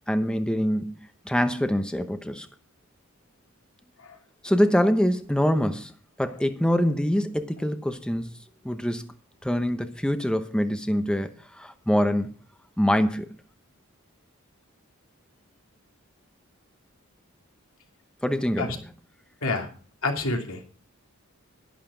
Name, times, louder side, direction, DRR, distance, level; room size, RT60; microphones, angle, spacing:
voice 1, 0.1-2.5 4.4-5.9 6.2-8.3 8.6-9.1 9.4-12.3 12.8-13.3 18.2-18.7, equal, 5° left, 0.8 m, -24 dB
voice 2, 20.0-20.6, left 2 dB, 80° left, 2.8 m, -27 dB
11.5 x 11.5 x 5.0 m
head